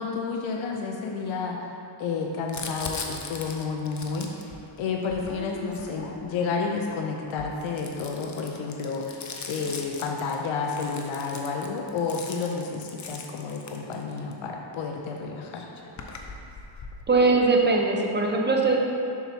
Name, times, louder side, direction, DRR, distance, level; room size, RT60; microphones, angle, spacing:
voice 1, 0.0-1.6 2.0-15.7, left 4 dB, 70° left, 1 dB, 0.7 m, -31 dB
Crumpling crinkling, 2.5-6.5 7.2-14.3 15.2-15.3 15.4-17.0, left 4 dB, 35° left, 0.7 m, -40 dB
voice 2, 17.1-18.8, right 3 dB, 20° right, 0 dB, 0.8 m, -21 dB
7.2 x 5.9 x 2.8 m, 2.6 s
cardioid pair, 90°, 48 cm